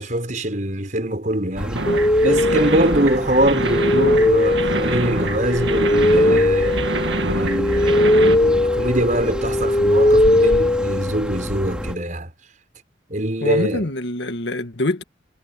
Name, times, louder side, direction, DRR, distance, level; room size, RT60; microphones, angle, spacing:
voice 1, 0.0-1.9 2.2-6.8 7.2-12.3 13.1-13.9, right 1 dB, 45° right, 5.6 m, -23 dB
sound 1, 1.5-12.0, equal, 5° right, 2.9 m, -31 dB
sound 2, 1.8-8.3, right 2 dB, 80° right, 1.9 m, -26 dB
sound 3, 1.9-11.5, left 1 dB, 20° left, 0.6 m, -19 dB
voice 2, 13.4-15.0, left 1 dB, 75° left, 1.9 m, -24 dB
head